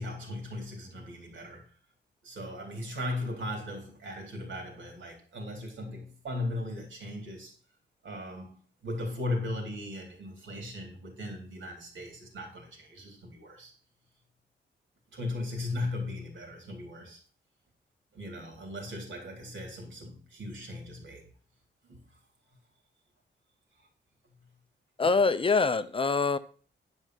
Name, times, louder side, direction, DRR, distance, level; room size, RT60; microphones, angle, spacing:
voice 1, 0.0-1.6 2.2-7.5 8.0-8.6 8.8-13.7 15.1-17.2 18.1-21.3 21.9-22.0, left 2 dB, 85° right, 3.7 m, -37 dB
voice 2, 25.0-26.4, left 4 dB, 30° left, 0.5 m, -24 dB
10.5 x 5.4 x 6.0 m
wide cardioid pair, 175°, 19 cm